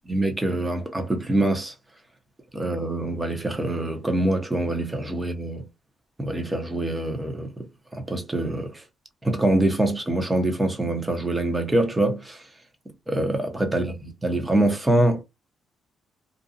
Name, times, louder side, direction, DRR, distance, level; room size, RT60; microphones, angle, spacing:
voice 1, 0.1-1.7 2.5-5.7 6.2-8.8 9.2-12.5 13.1-15.2, right 1 dB, 15° right, 0.9 m, -25 dB
2.6 x 2.3 x 2.6 m
cardioid pair, 90°, 0 cm